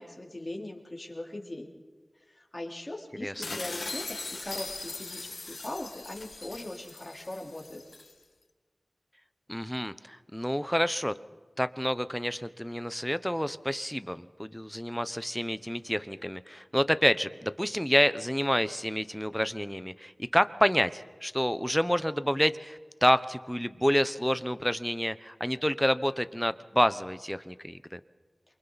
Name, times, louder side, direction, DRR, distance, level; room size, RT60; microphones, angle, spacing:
voice 1, 0.0-1.7 2.3-7.8, left 1 dB, 35° left, -1 dB, 3.9 m, -40 dB
sound 1, 3.4-8.1, left 3 dB, 75° left, 1.8 m, -40 dB
voice 2, 9.5-11.1 11.6-28.0, equal, 5° left, 13 dB, 0.9 m, -28 dB
28.0 x 24.5 x 4.2 m, 1.4 s
wide cardioid pair, 45°, 0 cm